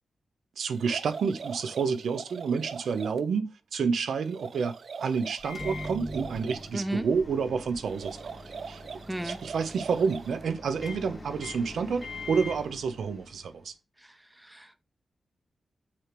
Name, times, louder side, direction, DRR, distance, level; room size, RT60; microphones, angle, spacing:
voice 1, 0.6-8.4 8.7-8.8 9.2-13.7, right 5 dB, 85° right, 0.8 m, -29 dB
sound 1, 0.7-3.2 4.2-6.7 7.9-10.4, right 5 dB, 55° right, 0.4 m, -42 dB
Microwave oven, 5.4-13.6, left 1 dB, 20° left, 1.5 m, -42 dB
voice 2, 6.7-7.1 9.1-9.4 14.0-14.8, right 1 dB, 10° right, 1.0 m, -35 dB
6.4 x 5.9 x 5.9 m
wide cardioid pair, 135°, 0 cm